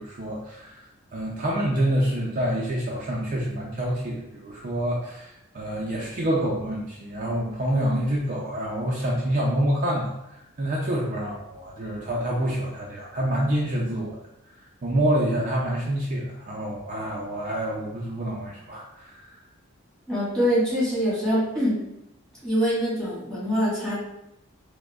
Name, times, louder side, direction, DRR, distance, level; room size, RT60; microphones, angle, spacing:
voice 1, 0.0-14.2 14.8-19.4, right 1 dB, 40° right, -3 dB, 0.4 m, -27 dB
voice 2, 20.1-21.8 22.4-23.9, equal, 5° left, -10 dB, 1.4 m, -24 dB
4.7 x 2.1 x 2.3 m, 0.88 s
head